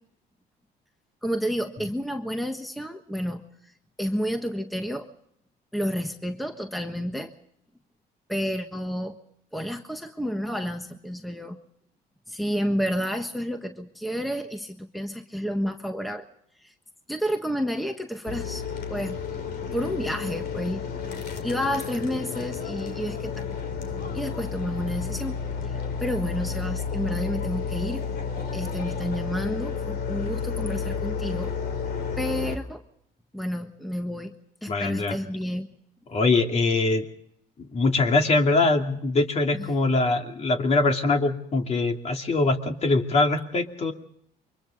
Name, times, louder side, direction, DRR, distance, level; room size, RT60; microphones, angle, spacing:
voice 1, 1.2-3.4 4.0-5.1 5.7-7.3 8.3-9.2 9.5-11.6 12.3-16.2 16.6-16.7 17.1-18.6 18.9-19.2 19.7-20.8 21.4-23.4 24.1-25.4 25.6-28.0 28.5-31.5 32.2-32.8 33.3-34.3 34.6-35.7 39.5-39.7, equal, ahead, 6 dB, 1.4 m, -30 dB
sound 1, 18.3-32.6, left 6 dB, 65° left, 3.2 m, -31 dB
voice 2, 34.7-35.2 36.1-37.0 37.6-43.9, left 3 dB, 40° left, 4 dB, 2.6 m, -23 dB
29.0 x 24.0 x 3.8 m, 0.70 s
cardioid pair, 110°, 17 cm